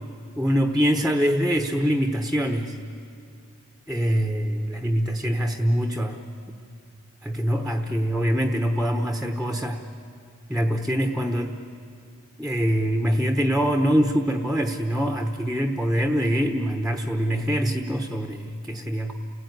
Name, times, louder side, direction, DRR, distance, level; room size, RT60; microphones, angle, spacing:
voice 1, 0.4-2.8 3.9-6.3 7.2-9.8 10.5-11.5 12.4-19.1, equal, ahead, 5 dB, 1.0 m, -24 dB
29.5 x 17.0 x 9.6 m, 2.4 s
head